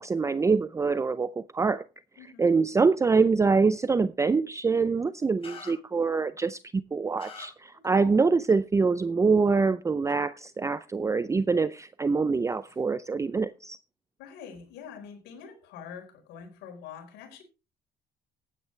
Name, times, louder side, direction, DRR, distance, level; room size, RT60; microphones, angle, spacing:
voice 1, 0.0-1.8 2.4-13.8, right 4 dB, 20° right, 0.5 m, -25 dB
sound 1, 5.4-5.7 7.2-7.5, left 5 dB, 35° left, 5.8 m, -43 dB
voice 2, 7.7-8.1 14.2-17.4, left 7 dB, 90° left, 4.4 m, -45 dB
15.0 x 9.8 x 3.2 m
cardioid pair, 110°, 17 cm